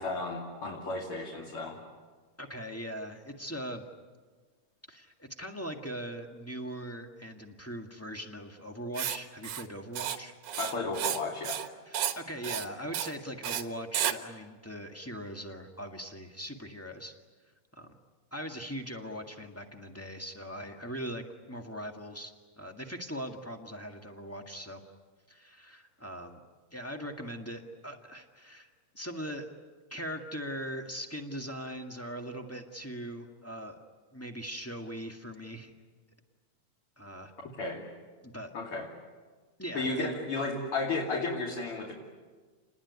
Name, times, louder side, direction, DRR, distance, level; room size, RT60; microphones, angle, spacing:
voice 1, 0.0-1.8 10.6-11.6 37.6-37.8 38.5-38.9 39.7-41.9, left 3 dB, 45° left, -1 dB, 3.4 m, -33 dB
voice 2, 2.4-3.8 4.9-10.3 11.8-17.1 17.7-18.0 18.3-24.8 25.3-26.4 26.7-29.5 29.9-33.8 34.1-35.7 37.0-37.3 38.2-38.5 39.6-40.1, equal, 10° left, 4 dB, 0.7 m, -40 dB
Writing, 8.9-9.2 9.4-9.6 9.9-10.2 10.4-11.2 11.4-11.7 11.9-12.2 12.4-12.7 12.9-13.1 13.4-13.6 13.9-14.1, right 10 dB, 70° right, 2.7 m, -32 dB
29.5 x 20.5 x 9.5 m, 1.4 s
omnidirectional pair, 3.8 m